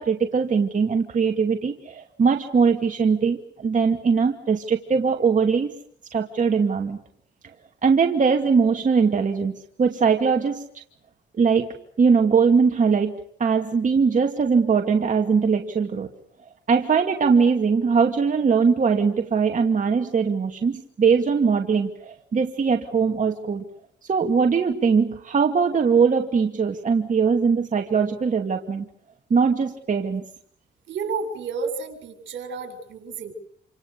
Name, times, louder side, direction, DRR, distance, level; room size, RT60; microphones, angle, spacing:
voice 1, 0.0-5.7 6.1-7.0 7.8-10.6 11.4-16.1 16.7-23.6 24.0-28.9 29.3-30.2, right 5 dB, 40° right, 3 dB, 2.4 m, -21 dB
voice 2, 30.9-33.3, right 5 dB, 70° right, 6 dB, 7.3 m, -31 dB
28.5 x 27.0 x 6.9 m, 0.66 s
cardioid pair, 90°, 20 cm